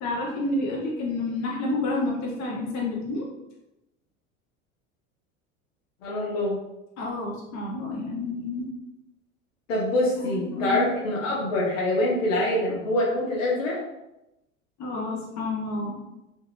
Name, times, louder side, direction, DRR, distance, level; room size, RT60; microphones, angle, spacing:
voice 1, 0.0-3.2 7.0-8.7 10.2-10.9 14.8-16.0, left 2 dB, 45° left, -3 dB, 1.2 m, -29 dB
voice 2, 6.0-6.6 9.7-13.8, left 1 dB, 80° left, -4 dB, 0.8 m, -25 dB
3.4 x 2.6 x 2.7 m, 0.92 s
hypercardioid pair, 80°, 38 cm